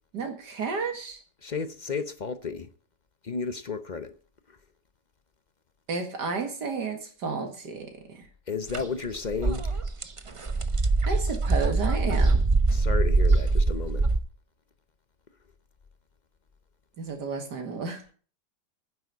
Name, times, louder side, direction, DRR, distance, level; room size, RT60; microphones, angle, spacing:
voice 1, 0.1-1.2 5.9-8.2 11.1-12.5 17.0-18.0, right 4 dB, 75° right, 2.4 m, -32 dB
voice 2, 1.4-2.7 3.2-4.2 4.5-4.6 8.5-9.8 12.7-14.1, left 5 dB, 45° left, 0.6 m, -33 dB
sound 1, 8.7-8.8 9.2-14.2, right 3 dB, 35° right, 0.5 m, -23 dB
10.0 x 7.9 x 8.3 m
omnidirectional pair, 1.8 m